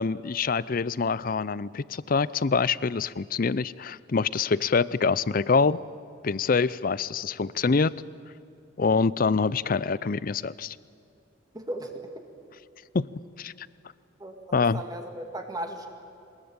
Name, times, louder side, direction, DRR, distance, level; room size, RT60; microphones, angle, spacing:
voice 1, 0.0-5.8 6.2-7.9 8.8-10.8 12.9-13.1 13.4-13.7 14.5-14.8, left 4 dB, 45° left, 20 dB, 0.5 m, -25 dB
voice 2, 11.5-12.1 14.2-15.9, right 1 dB, 20° right, 4 dB, 2.1 m, -36 dB
22.5 x 20.5 x 8.9 m, 2.6 s
head